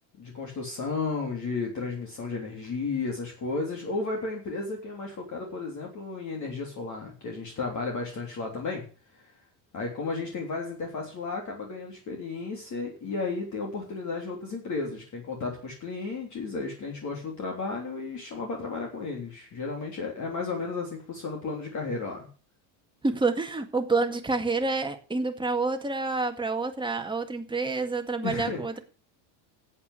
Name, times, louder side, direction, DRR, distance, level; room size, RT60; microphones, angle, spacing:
voice 1, 0.2-8.8 9.7-22.3 28.2-28.6, left 4 dB, 35° left, 0 dB, 3.3 m, -33 dB
voice 2, 23.0-28.8, right 3 dB, 10° right, 5 dB, 1.9 m, -28 dB
9.8 x 8.5 x 8.2 m, 0.38 s
supercardioid pair, 125°, 49 cm